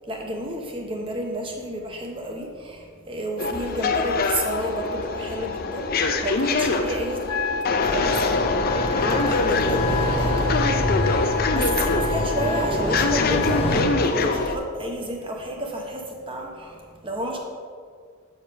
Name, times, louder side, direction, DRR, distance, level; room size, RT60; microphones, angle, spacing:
voice 1, 0.1-7.2 7.8-17.4, right 1 dB, 25° right, 1 dB, 1.0 m, -31 dB
sound 1, 3.4-14.6, left 3 dB, 40° left, 0.5 m, -24 dB
Wind instrument woodwind instrument, 7.3-13.9, left 4 dB, 90° left, 0.8 m, -31 dB
sound 2, 7.8-13.8, equal, 25° left, 1.0 m, -28 dB
6.7 x 6.6 x 6.0 m, 2.1 s
head